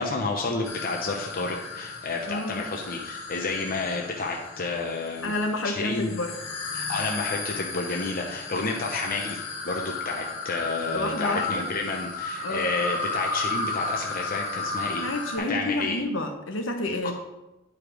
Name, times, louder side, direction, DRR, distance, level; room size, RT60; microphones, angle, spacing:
voice 1, 0.0-5.3 5.6-6.1 6.7-15.1 15.4-16.0 16.9-17.1, left 3 dB, 45° left, 1 dB, 0.8 m, -30 dB
sound 1, 0.6-15.4, left 3 dB, 85° left, 1.7 m, -34 dB
voice 2, 2.3-2.6 5.2-6.3 10.9-11.7 12.4-12.7 15.0-17.1, left 2 dB, 70° left, 4 dB, 1.1 m, -29 dB
9.6 x 5.0 x 4.9 m, 0.97 s
head